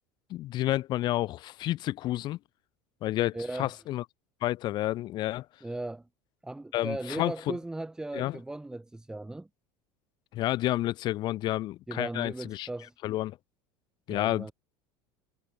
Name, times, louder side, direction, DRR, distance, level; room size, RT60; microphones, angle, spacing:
voice 1, 0.3-2.4 3.0-4.0 4.4-5.5 6.7-7.6 8.1-8.4 10.3-12.7 13.0-13.4 14.1-14.5, left 15 dB, 50° left, 1.9 m, -30 dB
voice 2, 3.3-3.8 5.6-6.1 6.4-9.5 11.9-12.9 14.1-14.5, right 2 dB, 5° right, 4.6 m, -37 dB
cardioid pair, 140°, 10 cm